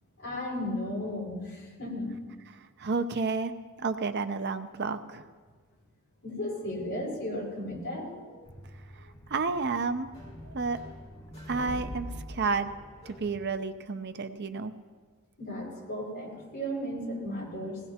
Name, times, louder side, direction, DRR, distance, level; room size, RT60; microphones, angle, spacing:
voice 1, 0.2-2.1 6.2-8.4 10.4-10.6 15.4-17.8, left 1 dB, 55° left, -4 dB, 5.6 m, -35 dB
voice 2, 2.8-3.5 3.8-5.2 9.3-10.1 10.5-10.8 11.5-12.7 13.1-14.7, right 4 dB, 50° right, 9 dB, 0.6 m, -30 dB
sound 1, 8.4-13.4, equal, 30° left, 2.1 m, -44 dB
20.5 x 18.0 x 2.9 m, 1.5 s
head